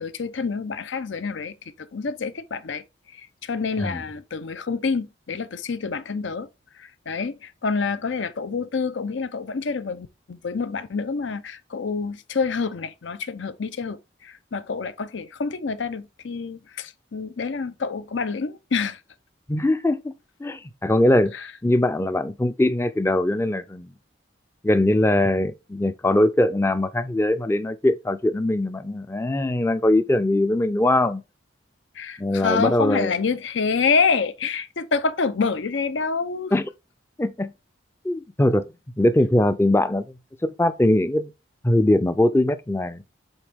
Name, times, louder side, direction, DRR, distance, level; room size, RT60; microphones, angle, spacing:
voice 1, 0.0-2.8 3.2-6.5 6.8-19.0 21.3-21.5 32.0-36.5, left 5 dB, 80° left, 0.6 m, -27 dB
voice 2, 19.5-20.1 20.4-21.3 21.6-23.9 24.6-31.2 32.2-33.1 36.5-36.7 37.2-37.5 38.0-38.7 39.0-40.0 40.4-41.3 41.6-43.0, left 1 dB, 15° left, 0.4 m, -21 dB
8.0 x 3.5 x 3.5 m
head